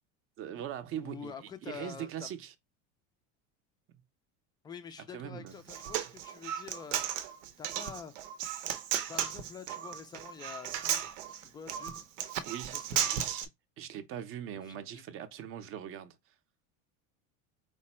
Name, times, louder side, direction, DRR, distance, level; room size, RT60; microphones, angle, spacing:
voice 1, 0.4-2.5 5.1-5.6 12.4-13.4 13.8-16.3, right 10 dB, 35° right, 0.6 m, -41 dB
voice 2, 1.0-2.3 4.6-7.3 7.6-8.1 9.1-11.1 11.4-12.0 12.7-13.2 14.7-15.1, left 7 dB, 10° left, 0.4 m, -47 dB
Human voice, 5.5-13.4, right 10 dB, 90° right, 0.8 m, -35 dB
4.9 x 2.2 x 4.2 m
cardioid pair, 150°, 37 cm